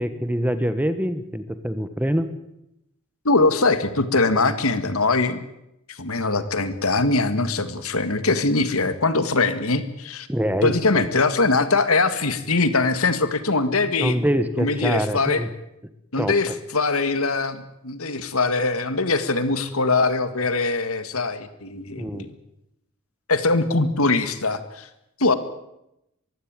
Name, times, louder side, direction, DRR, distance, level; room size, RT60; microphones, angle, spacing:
voice 1, 0.0-2.3 10.3-11.1 13.9-15.5 16.2-16.5 22.0-22.3, equal, 5° right, 11 dB, 1.4 m, -25 dB
voice 2, 3.3-5.5 5.9-10.3 10.6-14.2 14.6-15.5 16.1-22.3 23.3-24.9 25.2-25.3, left 3 dB, 75° left, 12 dB, 2.0 m, -22 dB
23.0 x 16.0 x 9.1 m, 0.85 s
head